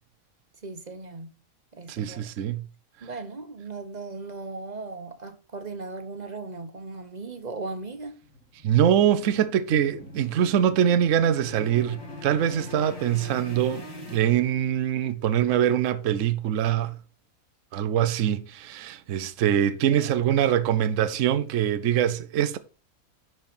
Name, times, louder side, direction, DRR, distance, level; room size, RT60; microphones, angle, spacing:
voice 1, 0.6-1.3 1.7-2.3 3.0-8.2 19.9-20.2, right 3 dB, 35° right, 1.0 m, -37 dB
voice 2, 1.9-2.6 8.6-17.0 17.7-22.6, right 10 dB, 65° right, 1.0 m, -23 dB
sound 1, 7.7-15.0, left 2 dB, 80° left, 3.4 m, -42 dB
10.5 x 4.5 x 4.4 m
omnidirectional pair, 1.5 m